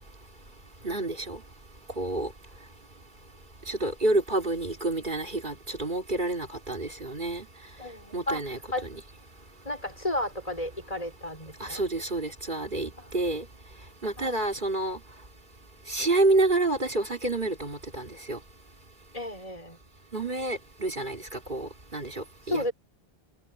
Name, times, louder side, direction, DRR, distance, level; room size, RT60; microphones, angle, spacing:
voice 1, 0.8-1.4 2.0-2.3 3.7-7.5 8.1-8.6 8.9-9.0 11.6-13.5 14.0-15.0 15.9-18.4 20.1-22.7, right 2 dB, 50° right, 3.8 m, -28 dB
voice 2, 7.8-8.4 8.7-8.8 9.7-11.8 13.0-13.2 14.2-14.4 19.1-19.8 22.5-22.7, left 1 dB, 35° left, 7.0 m, -33 dB
omnidirectional pair, 1.1 m